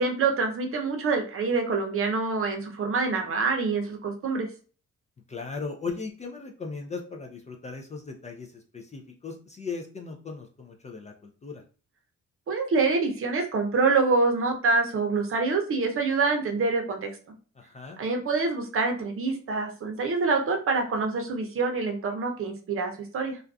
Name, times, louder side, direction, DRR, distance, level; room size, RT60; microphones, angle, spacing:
voice 1, 0.0-4.5 12.5-17.1 18.0-23.4, right 4 dB, 45° right, 3 dB, 0.7 m, -26 dB
voice 2, 5.3-11.6 17.6-18.0, left 4 dB, 25° left, 1 dB, 0.3 m, -38 dB
2.5 x 2.2 x 2.3 m, 0.38 s
cardioid pair, 90°, 30 cm